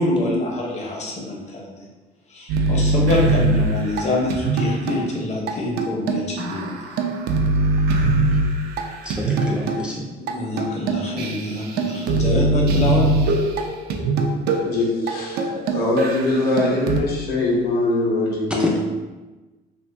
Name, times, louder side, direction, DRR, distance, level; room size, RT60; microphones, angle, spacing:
voice 1, 0.0-1.8 2.3-6.7 10.3-13.0, left 1 dB, 40° left, -2 dB, 0.8 m, -25 dB
sound 1, 2.5-5.0 5.5-5.6 5.8-9.8 10.3-10.4 10.6-17.0, right 2 dB, 70° right, 0.4 m, -22 dB
voice 2, 9.0-10.1 18.5-18.8, equal, 5° right, -3 dB, 0.4 m, -27 dB
voice 3, 14.6-15.4 15.7-18.8, left 2 dB, 65° left, -4 dB, 1.0 m, -22 dB
2.6 x 2.5 x 3.2 m, 1.2 s
cardioid pair, 110°, 17 cm